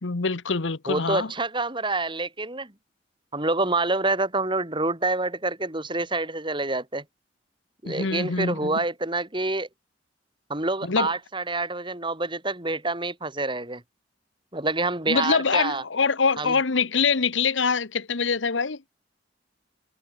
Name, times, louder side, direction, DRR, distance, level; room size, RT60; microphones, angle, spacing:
voice 1, 0.0-1.3 7.9-8.8 10.8-11.1 15.1-18.8, left 5 dB, 85° left, 1.1 m, -24 dB
voice 2, 0.9-2.7 3.3-7.0 7.8-9.7 10.5-13.8 14.5-15.8 16.4-16.5, right 2 dB, 25° right, 3.9 m, -27 dB
head